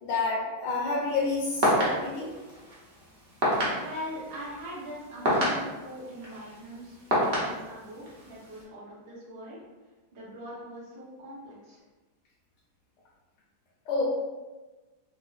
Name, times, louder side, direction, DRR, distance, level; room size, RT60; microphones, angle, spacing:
voice 1, 0.0-2.3 13.9-14.0, left 3 dB, 70° left, -4 dB, 1.1 m, -29 dB
sound 1, 1.1-8.6, equal, 50° right, 0.8 m, -30 dB
voice 2, 3.7-9.6 10.1-11.8, equal, 70° right, -7 dB, 1.8 m, -42 dB
4.7 x 2.1 x 2.4 m, 1.2 s
omnidirectional pair, 2.2 m